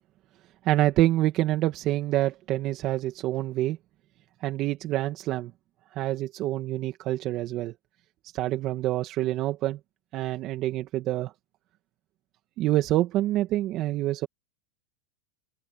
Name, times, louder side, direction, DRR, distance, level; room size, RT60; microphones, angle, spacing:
voice 1, 0.6-3.8 4.4-5.5 6.0-7.7 8.3-9.8 10.1-11.3 12.6-14.3, right 15 dB, 45° right, 2.3 m, -26 dB
open air
hypercardioid pair, 120°, 0 cm